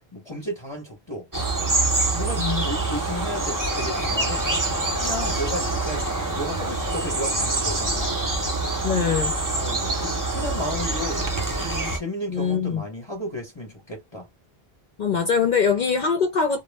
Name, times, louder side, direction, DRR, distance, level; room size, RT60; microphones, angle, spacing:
voice 1, 0.1-1.7 2.0-4.5 5.0-6.1 6.3-8.2 9.5-11.3 11.6-14.3, equal, 30° left, 0.8 m, -34 dB
sound 1, 1.3-12.0, right 2 dB, 25° right, 0.6 m, -25 dB
voice 2, 8.8-9.3 12.3-12.8 15.0-16.6, left 6 dB, 55° left, 0.6 m, -22 dB
2.2 x 2.0 x 3.2 m
omnidirectional pair, 1.0 m